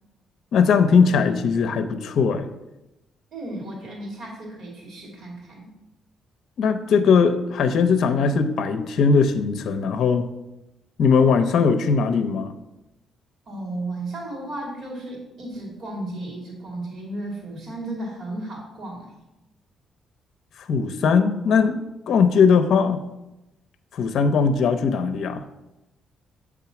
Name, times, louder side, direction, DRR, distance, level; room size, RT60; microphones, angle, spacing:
voice 1, 0.5-2.5 6.6-10.3 11.0-12.5 20.6-21.8 22.1-23.1 23.9-25.4, left 5 dB, 70° left, 9 dB, 0.5 m, -19 dB
voice 2, 3.3-5.7 13.5-19.1, right 1 dB, 60° right, -3 dB, 2.4 m, -34 dB
7.3 x 3.6 x 5.8 m, 0.96 s
cardioid pair, 90°, 0 cm